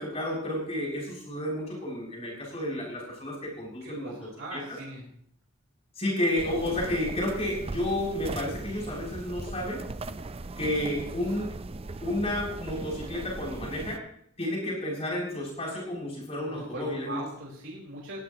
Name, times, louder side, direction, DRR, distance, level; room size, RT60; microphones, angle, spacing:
voice 1, 0.0-4.8 6.0-9.8 10.6-11.5 12.0-14.0 14.4-17.2, left 1 dB, 30° left, -3 dB, 7.2 m, -31 dB
voice 2, 3.8-5.0 16.5-18.2, right 2 dB, 55° right, -4 dB, 4.2 m, -40 dB
sound 1, 6.4-14.0, right 2 dB, 25° right, 0.5 m, -38 dB
19.0 x 16.0 x 3.0 m, 0.65 s
head